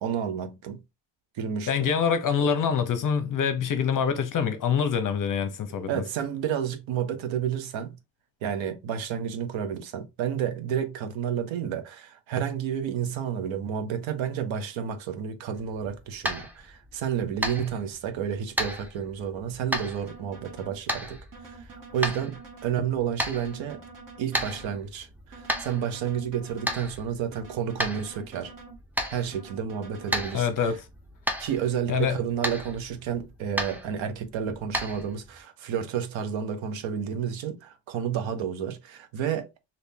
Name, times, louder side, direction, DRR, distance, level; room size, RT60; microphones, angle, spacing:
voice 1, 0.0-0.8 1.3-1.9 5.9-8.0 8.4-23.8 24.2-28.5 29.1-30.7 31.4-39.5, right 8 dB, 75° right, 0.8 m, -31 dB
voice 2, 1.7-6.0 30.3-30.8 31.9-32.2, left 7 dB, 45° left, 0.7 m, -25 dB
sound 1, 15.5-35.4, equal, 5° right, 0.5 m, -35 dB
sound 2, 20.0-20.8 21.3-22.8 23.3-24.8 25.3-26.8 27.3-28.8 29.3-30.2, right 4 dB, 45° right, 1.1 m, -47 dB
3.5 x 2.7 x 2.7 m
cardioid pair, 125°, 46 cm